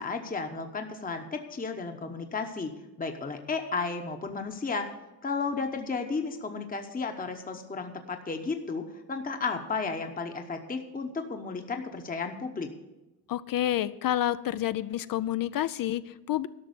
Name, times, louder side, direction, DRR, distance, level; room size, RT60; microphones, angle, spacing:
voice 1, 0.0-2.7 3.0-4.9 5.2-12.7, left 4 dB, 20° left, 5 dB, 0.9 m, -33 dB
voice 2, 13.3-16.5, left 12 dB, 60° left, 14 dB, 0.5 m, -29 dB
12.5 x 5.9 x 8.0 m, 1.0 s
cardioid pair, 110°, 39 cm